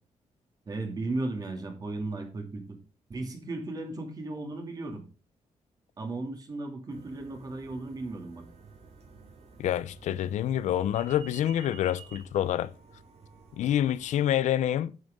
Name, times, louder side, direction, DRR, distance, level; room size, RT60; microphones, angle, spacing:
voice 1, 0.7-2.8 3.1-5.0 6.0-8.5, right 2 dB, 30° right, 2.6 m, -35 dB
sound 1, 6.9-14.2, right 5 dB, 65° right, 3.4 m, -52 dB
voice 2, 9.6-12.7 13.6-14.9, left 11 dB, 85° left, 0.6 m, -27 dB
9.3 x 8.1 x 3.7 m
wide cardioid pair, 160°, 12 cm